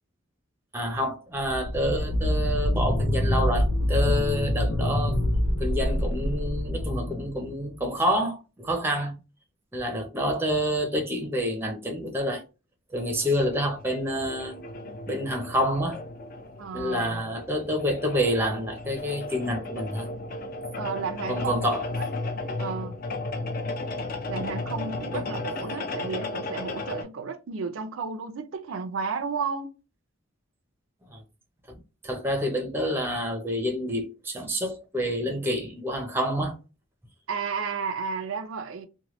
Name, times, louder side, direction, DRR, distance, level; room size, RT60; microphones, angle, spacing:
voice 1, 0.7-5.2 5.6-9.1 9.7-12.4 12.9-14.6 15.1-16.0 16.7-20.1 21.3-21.8 25.1-25.2 31.1-31.2 31.7-36.5, equal, 10° right, 0.5 m, -28 dB
sound 1, 1.4-7.8, equal, 85° left, 0.7 m, -26 dB
sound 2, 12.9-27.0, left 2 dB, 45° left, 0.4 m, -35 dB
voice 2, 16.6-17.3 20.7-22.1 22.6-23.0 24.3-29.7 37.3-38.9, right 5 dB, 75° right, 0.4 m, -33 dB
2.9 x 2.2 x 2.9 m
head